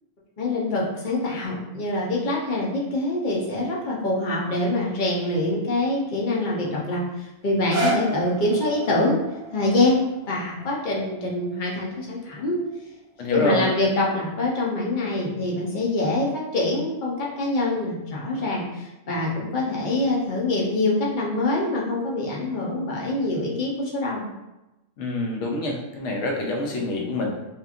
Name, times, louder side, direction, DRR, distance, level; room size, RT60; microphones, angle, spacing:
voice 1, 0.4-9.2 9.5-10.0 10.3-12.6 13.3-24.3, left 2 dB, 50° left, -3 dB, 0.7 m, -25 dB
sound 1, 7.4-13.5 14.2-14.3, right 2 dB, 60° right, 0.7 m, -34 dB
voice 2, 13.2-13.7 25.0-27.3, left 1 dB, 75° left, 0 dB, 0.9 m, -26 dB
2.9 x 2.4 x 2.4 m, 0.98 s
omnidirectional pair, 1.3 m